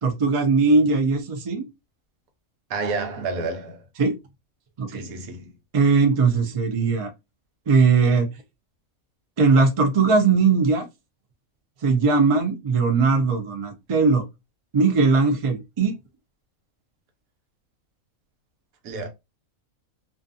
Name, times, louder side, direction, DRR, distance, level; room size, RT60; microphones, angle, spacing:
voice 1, 0.0-1.6 4.0-4.1 4.8-5.1 5.7-7.1 7.7-8.3 9.4-10.8 11.8-14.2 14.7-15.9, right 4 dB, 45° right, 0.4 m, -19 dB
voice 2, 2.7-3.8 4.9-5.5 18.8-19.1, right 3 dB, 85° right, 1.1 m, -30 dB
2.5 x 2.4 x 2.6 m
omnidirectional pair, 1.5 m